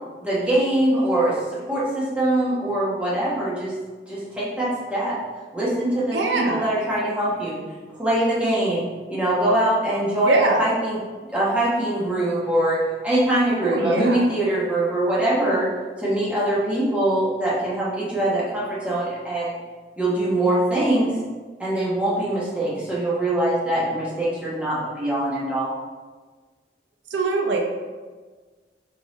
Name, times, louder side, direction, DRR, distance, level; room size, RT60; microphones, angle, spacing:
voice 1, 0.2-3.7 4.1-5.2 5.5-7.6 7.9-11.0 11.3-15.7 16.0-19.6 20.0-21.2 21.6-25.7, right 1 dB, 5° right, -8 dB, 1.0 m, -23 dB
voice 2, 6.1-6.7 10.3-10.7 13.6-14.2 27.1-27.6, right 3 dB, 85° right, 1 dB, 0.5 m, -22 dB
3.5 x 3.2 x 4.0 m, 1.4 s
head